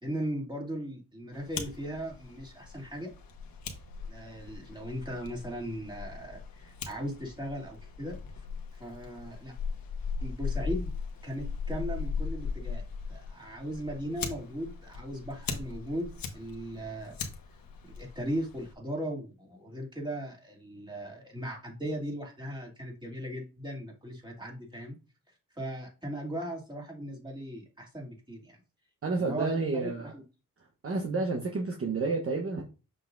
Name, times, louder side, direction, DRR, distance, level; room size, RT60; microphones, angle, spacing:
voice 1, 0.0-3.1 4.1-8.2 8.7-9.5 10.2-10.9 11.2-12.8 13.1-17.2 18.0-25.0 25.5-28.6 29.2-29.5 29.8-30.2, equal, 15° right, -1 dB, 2.6 m, -38 dB
Fire, 1.3-18.7, left 5 dB, 85° left, 1.2 m, -39 dB
voice 2, 29.0-30.1 30.8-32.6, right 3 dB, 40° right, 2 dB, 1.0 m, -30 dB
6.6 x 5.8 x 2.6 m, 0.32 s
cardioid pair, 90°, 34 cm